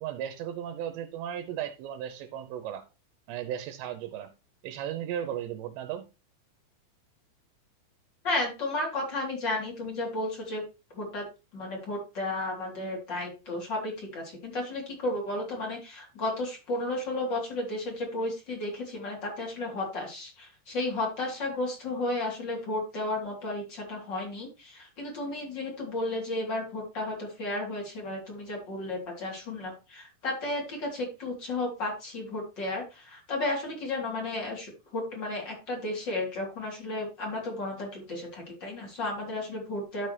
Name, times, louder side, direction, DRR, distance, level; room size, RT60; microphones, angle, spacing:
voice 1, 0.0-2.9 3.3-4.3 4.6-6.1, right 10 dB, 80° right, 2.9 m, -35 dB
voice 2, 8.2-10.6 10.9-40.1, left 2 dB, 25° left, 3.6 m, -33 dB
12.0 x 6.2 x 3.3 m
omnidirectional pair, 5.2 m